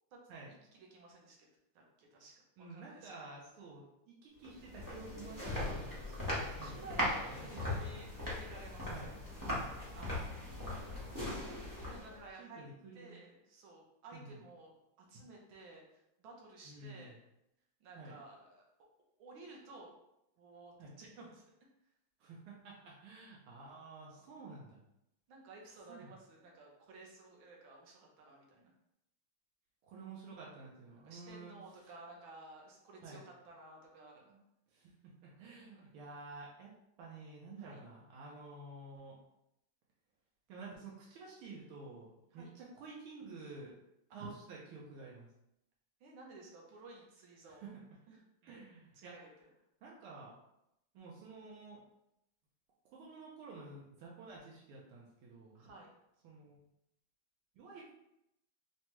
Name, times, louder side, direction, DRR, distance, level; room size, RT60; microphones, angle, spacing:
voice 1, 0.7-1.4 1.7-2.3 2.7-3.1 6.0-8.9 9.9-10.3 11.1-11.3 11.8-12.6 12.9-17.2 17.8-18.6 19.2-19.9 20.4-21.4 24.2-24.4 25.3-28.7 31.0-34.4 35.4-35.9 37.6-37.8 42.3-42.5 44.1-44.3 46.0-47.7 48.1-48.6 48.9-49.5 55.5-56.0, right 2 dB, 70° right, -1 dB, 1.6 m, -55 dB
voice 2, 2.6-7.0 7.2-8.1 8.9-9.1 10.0-10.1 10.8-11.3 12.4-13.2 14.1-14.4 16.6-17.2 18.0-18.2 20.8-20.9 22.2-24.8 25.9-26.1 29.8-31.5 33.0-33.2 34.7-36.7 37.0-39.2 40.5-43.8 44.1-45.3 47.5-47.8 48.4-49.1 49.8-50.3 50.9-51.8 52.9-55.7 56.2-56.6 57.5-57.9, right 3 dB, 85° right, -4 dB, 1.7 m, -51 dB
sound 1, 4.4-12.2, left 1 dB, 30° right, 0.3 m, -39 dB
5.6 x 2.3 x 3.0 m, 0.82 s
omnidirectional pair, 2.4 m